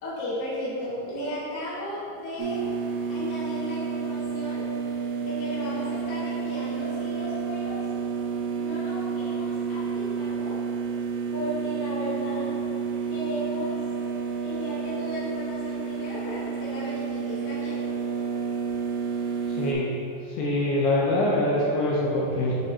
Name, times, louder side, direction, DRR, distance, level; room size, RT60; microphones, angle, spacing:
voice 1, 0.0-2.6 3.1-4.7 5.2-7.8 8.5-10.6 11.3-12.5 13.1-13.8 14.4-17.8, equal, 60° left, -9 dB, 1.6 m, -35 dB
sound 1, 2.4-19.7, right 6 dB, 85° right, 2.8 m, -30 dB
voice 2, 19.5-19.9 20.3-22.6, left 1 dB, 80° left, -5 dB, 2.4 m, -24 dB
11.0 x 4.0 x 2.8 m, 2.7 s
omnidirectional pair, 5.2 m